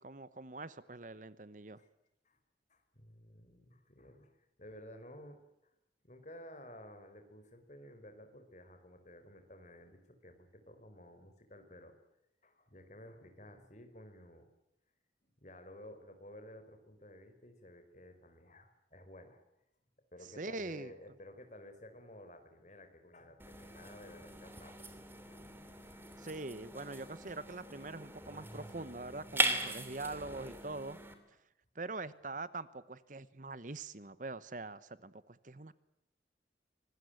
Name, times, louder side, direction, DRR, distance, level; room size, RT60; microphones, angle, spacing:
voice 1, 0.0-1.8 20.4-20.9 26.2-31.0 31.3-31.4 31.7-35.7, right 3 dB, 45° right, 16 dB, 1.0 m, -43 dB
voice 2, 2.7-5.4 6.0-11.9 12.4-14.5 15.4-19.4 20.1-25.5 25.8-26.1, left 1 dB, 40° left, 7 dB, 4.6 m, -54 dB
sound 1, 23.4-31.1, right 2 dB, 10° right, 3.0 m, -40 dB
25.5 x 20.0 x 9.2 m, 0.86 s
head